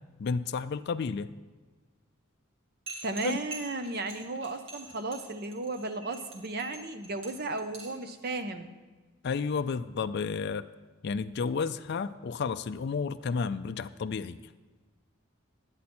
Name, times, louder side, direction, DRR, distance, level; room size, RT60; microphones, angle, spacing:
voice 1, 0.2-1.3 3.2-3.4 9.2-10.7 11.0-14.4, left 5 dB, 50° left, 10 dB, 0.3 m, -31 dB
sound 1, 2.9-8.0, right 1 dB, 60° right, 2.2 m, -44 dB
voice 2, 3.0-8.7, right 2 dB, 45° right, 8 dB, 0.6 m, -35 dB
10.5 x 9.7 x 4.3 m, 1.3 s
head